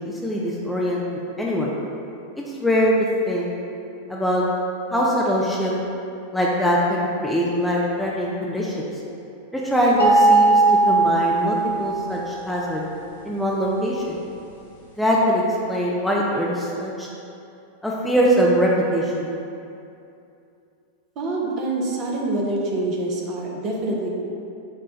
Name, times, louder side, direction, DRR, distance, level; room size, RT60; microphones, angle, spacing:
voice 1, 0.0-1.7 2.6-3.0 3.3-3.5 4.1-4.4 4.9-5.7 6.3-8.9 9.5-12.8 13.2-14.1 15.0-17.1 17.8-19.3, equal, 5° left, -5 dB, 0.5 m, -22 dB
sound 1, 10.0-12.2, right 3 dB, 70° left, 0.8 m, -18 dB
voice 2, 21.2-24.1, right 2 dB, 35° right, -2 dB, 0.7 m, -26 dB
4.8 x 2.3 x 4.4 m, 2.7 s
figure-of-eight pair, 90°, 0 cm